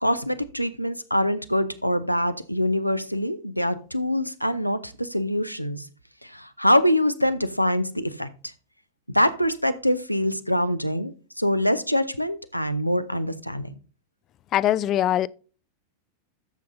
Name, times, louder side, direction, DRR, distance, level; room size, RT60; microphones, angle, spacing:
voice 1, 0.0-5.9 6.2-8.3 9.1-13.7, equal, 90° left, 0.7 m, -24 dB
voice 2, 14.5-15.3, left 12 dB, 35° left, 0.4 m, -22 dB
13.5 x 7.5 x 2.7 m
figure-of-eight pair, 90°, 0 cm